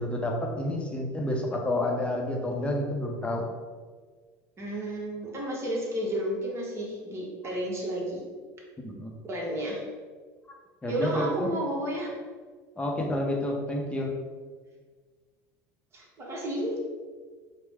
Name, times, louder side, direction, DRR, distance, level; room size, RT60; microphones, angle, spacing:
voice 1, 0.0-3.5 8.8-9.2 10.8-11.6 12.8-14.1, left 1 dB, 15° left, 1 dB, 0.7 m, -29 dB
voice 2, 4.6-8.2 9.3-9.8 10.9-12.1 15.9-16.8, right 1 dB, 30° right, -2 dB, 1.1 m, -32 dB
4.5 x 2.1 x 3.5 m, 1.5 s
supercardioid pair, 95°, 8 cm